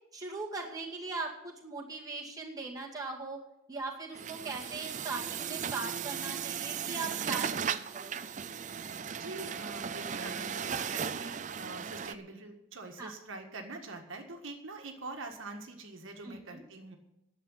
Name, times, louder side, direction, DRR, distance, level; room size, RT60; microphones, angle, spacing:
voice 1, 0.1-3.4 3.7-8.1 13.0-13.1 16.2-16.6, right 3 dB, 15° right, -3 dB, 2.2 m, -40 dB
Truck, 4.1-12.1, right 7 dB, 35° right, 0.5 m, -36 dB
voice 2, 6.9-7.7 9.2-17.0, right 2 dB, 65° right, 3 dB, 1.7 m, -45 dB
11.0 x 7.6 x 10.0 m, 0.88 s
head